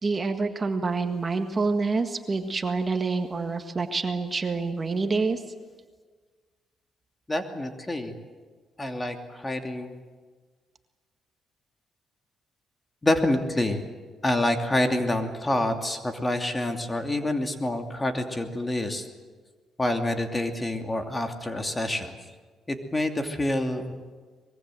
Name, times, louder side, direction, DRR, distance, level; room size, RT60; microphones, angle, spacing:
voice 1, 0.0-5.4, right 4 dB, 35° right, 6 dB, 1.7 m, -27 dB
voice 2, 7.3-8.1 8.8-9.9 13.0-13.8 14.2-19.1 19.8-22.2 22.7-23.9, left 1 dB, 20° left, 5 dB, 2.6 m, -27 dB
24.0 x 21.5 x 7.8 m, 1.5 s
cardioid pair, 90°, 0 cm